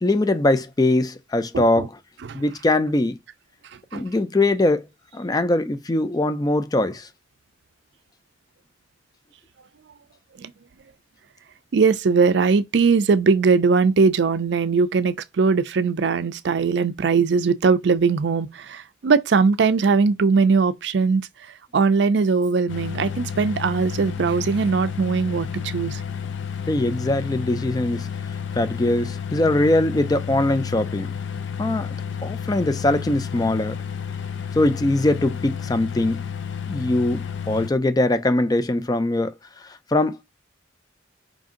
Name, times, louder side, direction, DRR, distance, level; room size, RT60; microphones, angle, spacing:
voice 1, 0.0-2.0 2.3-3.2 3.9-4.9 5.1-7.1 26.7-28.1 28.6-31.1 31.6-31.9 32.2-33.8 34.5-36.2 36.7-39.3 39.6-40.2, left 1 dB, 20° left, 0.4 m, -22 dB
voice 2, 1.5-1.9 2.2-2.4 3.9-4.0 10.4-10.5 11.7-21.2 21.7-26.0, right 4 dB, 65° right, 0.4 m, -20 dB
sound 1, 22.7-37.7, left 7 dB, 75° left, 0.5 m, -31 dB
5.1 x 2.6 x 3.7 m
head